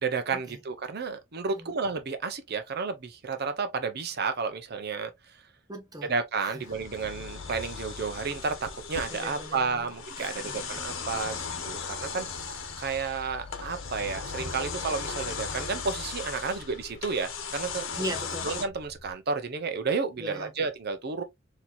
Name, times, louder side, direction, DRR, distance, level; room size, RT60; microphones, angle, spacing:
voice 1, 0.0-5.1 6.1-11.4 11.6-12.3 12.8-17.9 18.4-21.2, right 4 dB, 55° right, 0.7 m, -31 dB
voice 2, 5.7-6.1 6.4-6.6 9.1-10.7 18.0-18.5 20.2-20.5, equal, 20° right, 0.9 m, -39 dB
sound 1, 6.6-18.7, left 5 dB, 85° left, 0.9 m, -37 dB
sound 2, 7.0-19.1, left 3 dB, 30° left, 0.7 m, -47 dB
4.3 x 2.9 x 2.4 m
head